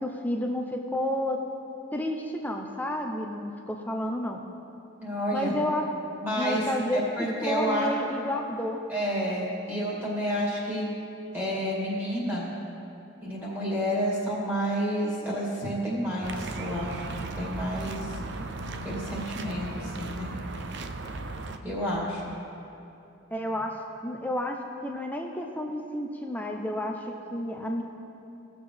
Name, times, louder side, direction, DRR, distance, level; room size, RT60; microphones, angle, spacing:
voice 1, 0.0-1.4 1.9-4.4 5.3-5.8 6.4-7.0 7.4-8.8 23.3-24.6 24.8-27.8, left 1 dB, 5° left, 2 dB, 0.5 m, -31 dB
voice 2, 5.0-5.5 6.2-6.6 6.9-7.9 8.9-10.9 11.3-12.5 13.2-18.2 18.8-20.3 21.6-22.3, equal, 10° right, -7 dB, 2.4 m, -30 dB
sound 1, 16.2-21.6, right 2 dB, 55° right, 0.5 m, -36 dB
18.5 x 7.1 x 3.4 m, 2.8 s
head